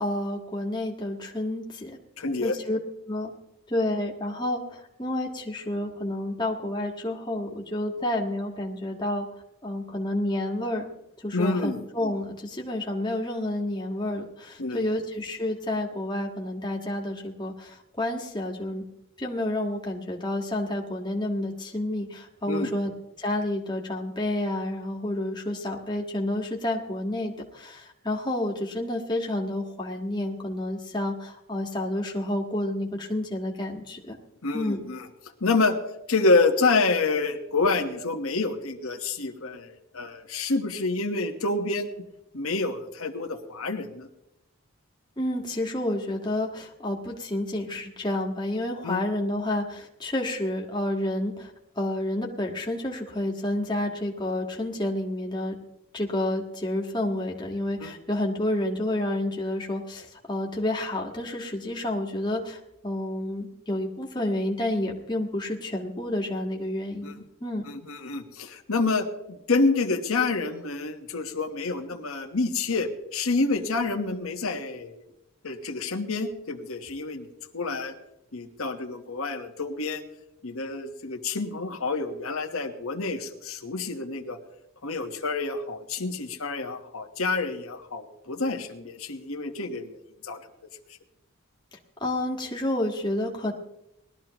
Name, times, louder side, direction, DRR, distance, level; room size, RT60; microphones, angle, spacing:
voice 1, 0.0-2.0 2.4-2.8 3.1-3.3 3.7-9.3 9.6-10.8 11.2-18.8 19.2-22.9 23.2-34.2 34.5-34.8 45.2-55.6 55.9-67.6 92.0-93.5, left 1 dB, 20° left, 0 dB, 1.7 m, -30 dB
voice 2, 2.2-2.5 11.3-11.8 14.6-14.9 22.5-22.7 34.4-35.1 35.4-35.8 36.1-42.0 42.3-44.1 48.8-49.0 57.8-57.9 67.0-67.1 67.7-75.0 75.4-77.3 77.5-77.9 78.3-80.0 80.4-84.4 84.8-90.0 90.2-90.4, left 3 dB, 80° left, 4 dB, 1.3 m, -28 dB
20.0 x 13.0 x 3.0 m, 0.86 s
head